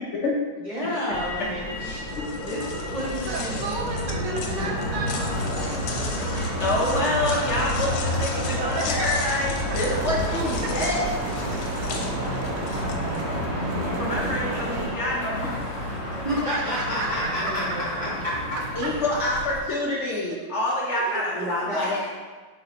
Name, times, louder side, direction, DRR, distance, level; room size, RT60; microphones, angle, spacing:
voice 1, 0.6-1.7 2.4-3.8 6.7-7.7 16.2-17.6 21.3-22.1, equal, 20° right, -9 dB, 1.3 m, -30 dB
Motor vehicle (road), 1.1-19.6, equal, 50° left, 1.7 m, -30 dB
voice 2, 1.8-2.3 6.6-11.1 13.8-15.6 15.9-16.2 18.8-21.3 21.7-22.1, left 1 dB, 75° left, -4 dB, 0.6 m, -27 dB
sound 1, 2.1-13.2, left 5 dB, 90° left, 1.6 m, -38 dB
voice 3, 2.7-6.7 8.5-9.6 10.1-10.2 11.5-12.4 16.5-17.3 17.9-18.0 20.3-20.5 20.9-21.5, right 3 dB, 65° right, 0 dB, 1.3 m, -35 dB
sound 2, 9.9-14.9, right 3 dB, 85° right, 1.6 m, -33 dB
8.3 x 4.0 x 2.9 m, 1.4 s
omnidirectional pair, 2.3 m